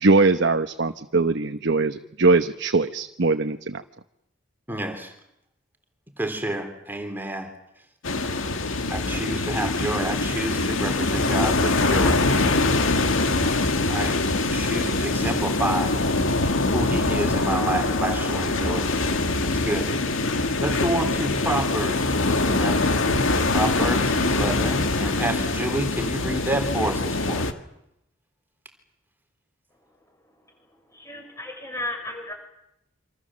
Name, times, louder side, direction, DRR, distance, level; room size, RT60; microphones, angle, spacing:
voice 1, 0.0-3.8, right 3 dB, 60° right, 7 dB, 1.1 m, -21 dB
voice 2, 4.7-5.1 6.2-7.5 8.9-12.2 13.8-14.2 14.5-15.9 16.7-18.9 19.4-19.9 20.6-23.1 23.5-27.6, right 1 dB, 10° right, 5 dB, 3.5 m, -29 dB
sound 1, 8.0-27.5, left 2 dB, 80° left, 2.1 m, -23 dB
voice 3, 30.9-32.3, left 1 dB, 15° left, 3 dB, 6.7 m, -34 dB
27.5 x 26.5 x 7.5 m, 0.80 s
head